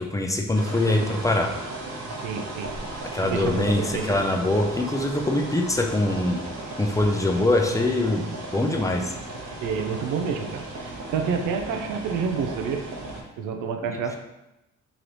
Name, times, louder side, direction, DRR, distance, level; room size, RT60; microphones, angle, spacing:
voice 1, 0.0-1.5 3.1-6.5 6.8-9.1 13.9-14.2, left 2 dB, 10° left, 2 dB, 0.5 m, -23 dB
sound 1, 0.5-13.2, right 2 dB, 60° right, 1.0 m, -36 dB
voice 2, 2.2-2.8 3.2-4.2 9.6-12.9 13.4-14.2, right 6 dB, 80° right, 5 dB, 0.5 m, -29 dB
3.2 x 3.0 x 3.9 m, 0.93 s
cardioid pair, 90°, 30 cm